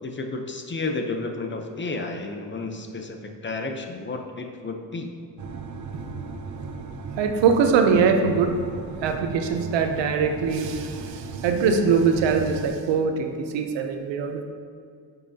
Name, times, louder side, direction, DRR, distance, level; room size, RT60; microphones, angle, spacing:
voice 1, 0.0-5.1, left 3 dB, 25° left, 4 dB, 0.7 m, -32 dB
sound 1, 5.4-12.7, right 4 dB, 45° right, 0.6 m, -36 dB
voice 2, 7.2-8.5 9.0-14.4, right 5 dB, 85° right, 5 dB, 0.8 m, -22 dB
8.7 x 5.5 x 2.8 m, 2.2 s
cardioid pair, 80°, 43 cm